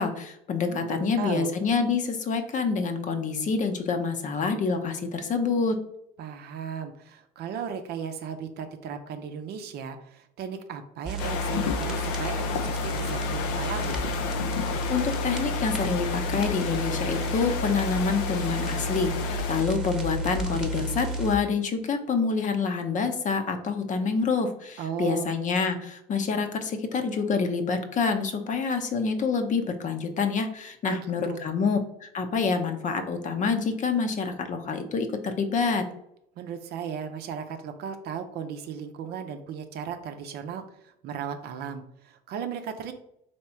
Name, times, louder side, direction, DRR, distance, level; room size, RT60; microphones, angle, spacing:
voice 1, 0.0-5.8 14.9-35.9, left 5 dB, 45° left, 7 dB, 0.7 m, -27 dB
voice 2, 0.7-1.5 6.2-14.0 24.8-25.3 30.8-31.0 31.2-31.4 36.4-42.9, right 7 dB, 60° right, 7 dB, 0.6 m, -36 dB
sound 1, 11.1-21.4, right 1 dB, 5° right, 1.0 m, -31 dB
sound 2, 11.2-19.6, left 7 dB, 80° left, 0.5 m, -32 dB
3.4 x 2.9 x 4.3 m, 0.78 s
supercardioid pair, 75°, 19 cm